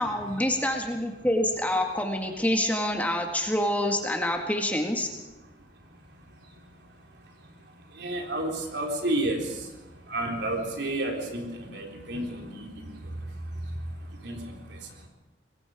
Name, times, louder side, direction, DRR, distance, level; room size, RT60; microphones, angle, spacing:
voice 1, 0.0-5.1, left 1 dB, 10° left, 3 dB, 1.9 m, -26 dB
voice 2, 5.3-15.1, right 1 dB, 65° right, 1 dB, 3.9 m, -33 dB
24.5 x 21.0 x 5.1 m, 1.1 s
head